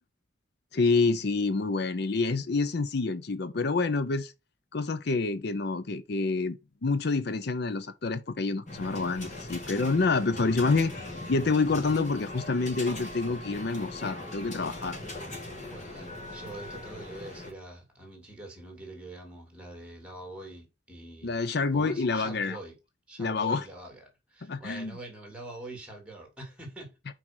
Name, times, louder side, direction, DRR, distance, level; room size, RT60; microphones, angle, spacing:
voice 1, 0.7-4.3 4.7-15.0 21.2-22.6 23.2-23.7 24.4-24.9, left 3 dB, 60° left, 0.6 m, -28 dB
sound 1, 8.7-17.5, left 1 dB, 40° left, 3.6 m, -40 dB
voice 2, 15.7-21.4 21.7-22.8 23.1-26.9, right 2 dB, 5° right, 3.1 m, -44 dB
6.0 x 5.1 x 6.1 m
head